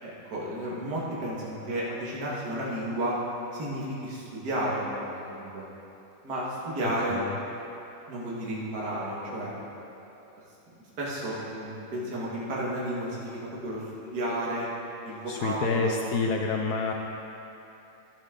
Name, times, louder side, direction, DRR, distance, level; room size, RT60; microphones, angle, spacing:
voice 1, 0.0-3.2 3.5-5.7 6.2-7.3 8.1-9.5 11.0-14.7 15.0-16.0, right 1 dB, 50° right, -6 dB, 2.3 m, -32 dB
voice 2, 15.3-16.9, left 4 dB, 90° left, 2 dB, 0.8 m, -28 dB
15.0 x 7.5 x 3.7 m, 2.9 s
omnidirectional pair, 2.4 m